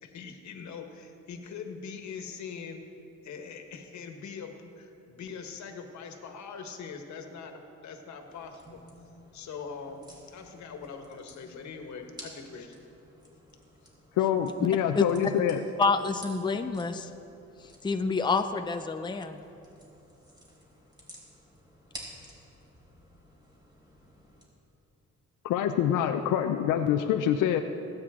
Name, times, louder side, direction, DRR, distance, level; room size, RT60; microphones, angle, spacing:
voice 1, 0.0-2.8 3.2-8.8 9.3-10.0 10.3-12.8, left 5 dB, 70° left, 5 dB, 1.5 m, -42 dB
sound 1, 8.3-24.5, equal, 15° right, 3.4 m, -52 dB
voice 2, 14.2-15.6 25.5-27.6, left 10 dB, 85° left, 6 dB, 0.6 m, -25 dB
voice 3, 15.8-17.1 17.8-19.5, left 4 dB, 15° left, 7 dB, 0.6 m, -28 dB
20.5 x 8.9 x 3.7 m, 2.7 s
cardioid pair, 90°, 30 cm